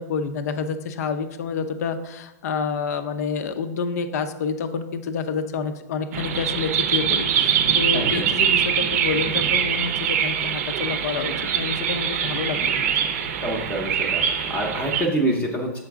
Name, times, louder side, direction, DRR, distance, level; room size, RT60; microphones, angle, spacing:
voice 1, 0.0-12.9, left 5 dB, 60° left, 10 dB, 0.6 m, -28 dB
sound 1, 6.1-15.1, right 8 dB, 55° right, 0.6 m, -23 dB
voice 2, 7.9-8.3 13.4-15.8, right 1 dB, 15° left, 0 dB, 0.7 m, -26 dB
6.9 x 3.9 x 3.5 m, 0.96 s
hypercardioid pair, 130°, 10 cm